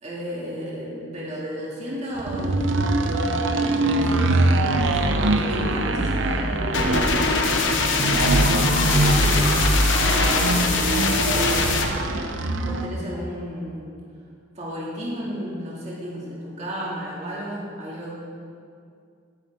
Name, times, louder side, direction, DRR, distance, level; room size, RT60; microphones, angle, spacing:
voice 1, 0.0-7.8 8.9-9.5 10.0-13.9 14.5-18.1, equal, 35° right, -6 dB, 2.4 m, -34 dB
sound 1, 2.2-13.0, right 2 dB, 80° right, 0.8 m, -22 dB
sound 2, 6.4-6.5 7.0-10.5 10.8-11.3 12.0-12.1, left 3 dB, 50° left, 1.5 m, -35 dB
sound 3, 6.7-11.9, left 4 dB, 80° left, 1.1 m, -23 dB
13.5 x 10.0 x 3.7 m, 2.3 s
head